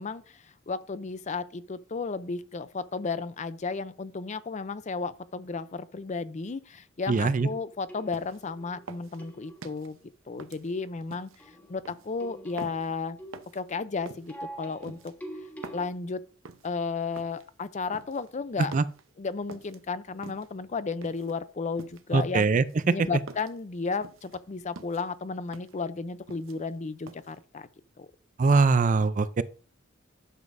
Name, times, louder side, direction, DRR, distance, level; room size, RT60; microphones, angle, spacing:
voice 1, 0.0-10.0 10.3-11.3 11.7-13.2 13.5-15.1 15.7-16.2 16.6-18.7 19.2-22.5 22.9-27.7 28.0-28.1, left 4 dB, 35° left, 0.5 m, -33 dB
voice 2, 7.1-7.5 18.7-18.8 22.1-22.9 28.4-29.4, right 4 dB, 40° right, 0.4 m, -22 dB
sound 1, 7.4-9.9 11.4-15.9, right 1 dB, 10° left, 1.4 m, -46 dB
sound 2, 8.1-8.5 8.9-9.9 10.4-11.4 11.8-12.1 12.6-12.9 13.3-13.6 14.1-14.3 14.8-15.9 16.4-16.7 17.2-17.5 17.9-18.3 18.7-19.0 19.5-19.8 20.2-20.6 21.0-21.4 21.8-22.1 22.5-23.6 24.0-24.4 24.8-25.1 25.5-25.8 26.1-26.8 27.1-27.4, right 4 dB, 75° right, 0.8 m, -46 dB
11.0 x 7.1 x 2.6 m
head